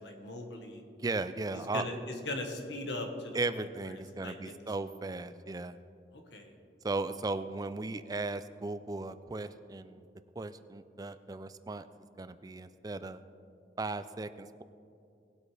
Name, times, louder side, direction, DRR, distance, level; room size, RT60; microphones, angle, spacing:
voice 1, 0.0-0.8 1.5-4.5 6.1-6.5, left 2 dB, 85° left, 3 dB, 1.5 m, -40 dB
voice 2, 1.0-1.8 3.3-5.7 6.8-10.1 10.4-11.9 12.2-13.2 13.8-14.6, right 3 dB, 20° right, 12 dB, 0.4 m, -36 dB
19.0 x 8.2 x 3.4 m, 2.5 s
head